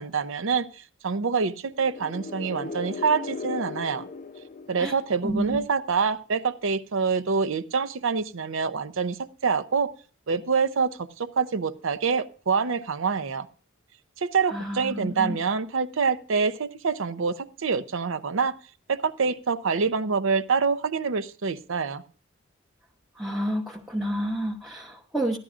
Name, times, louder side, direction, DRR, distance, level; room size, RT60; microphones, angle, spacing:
voice 1, 0.0-4.1 4.7-9.9 10.3-13.5 14.2-18.6 18.9-22.0, right 5 dB, 70° right, 13 dB, 0.6 m, -26 dB
sound 1, 1.8-5.6, left 4 dB, 40° left, 0.6 m, -37 dB
voice 2, 5.2-5.6 14.5-15.4 23.1-25.4, right 1 dB, ahead, -2 dB, 0.8 m, -30 dB
15.0 x 11.5 x 2.5 m, 0.38 s
head